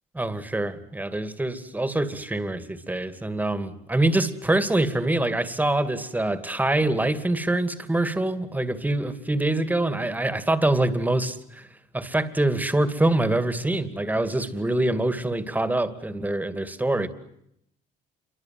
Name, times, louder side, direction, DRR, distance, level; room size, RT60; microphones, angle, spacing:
voice 1, 0.1-11.7 11.9-17.1, right 2 dB, 10° right, 11 dB, 2.5 m, -25 dB
28.0 x 24.0 x 7.8 m, 0.76 s
cardioid pair, 110°, 17 cm